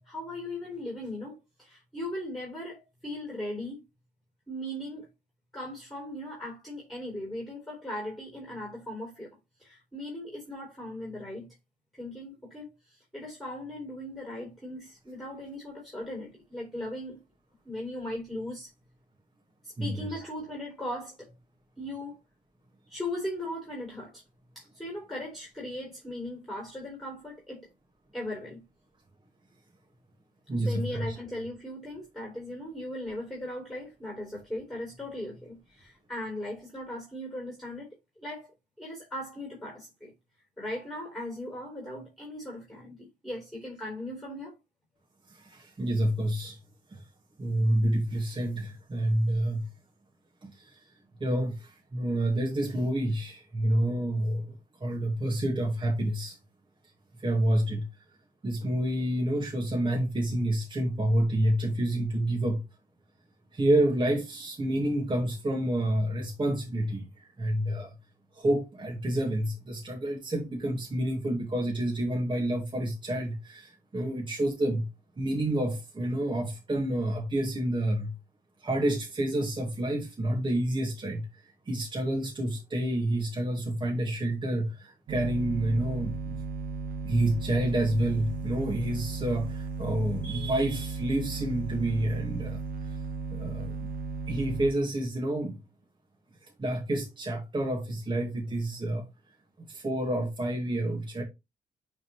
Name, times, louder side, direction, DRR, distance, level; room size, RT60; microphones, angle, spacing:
voice 1, 0.0-3.8 4.5-5.1 5.5-9.3 9.6-11.5 12.0-17.2 17.6-18.7 19.6-21.3 21.8-22.2 22.9-24.2 24.5-27.7 28.1-28.6 30.6-37.9 38.2-40.1 40.6-44.5, left 1 dB, ahead, 4.1 m, -38 dB
voice 2, 19.8-20.2 30.5-31.2 45.3-46.6 46.9-47.0 47.4-49.7 50.4-50.8 51.2-54.6 54.8-56.4 57.2-57.9 58.4-62.6 63.5-67.9 68.3-74.9 75.2-78.1 78.6-86.4 87.1-93.0 93.3-93.9 94.3-95.6 96.4-99.1 99.7-101.2, right 1 dB, 30° right, 1.9 m, -29 dB
sound 1, 85.1-94.7, right 4 dB, 75° right, 1.1 m, -35 dB
8.7 x 3.8 x 3.1 m
supercardioid pair, 65°, 15 cm